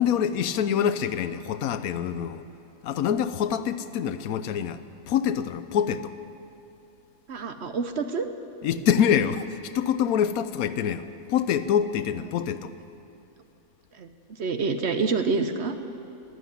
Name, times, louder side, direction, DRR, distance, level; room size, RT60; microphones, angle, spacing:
voice 1, 0.0-2.4 2.8-6.1 8.6-12.7, left 8 dB, 90° left, 13 dB, 1.1 m, -25 dB
voice 2, 7.3-8.3 14.0-14.1 14.4-15.7, right 4 dB, 55° right, 8 dB, 1.0 m, -27 dB
13.0 x 11.5 x 9.4 m, 2.8 s
omnidirectional pair, 1.5 m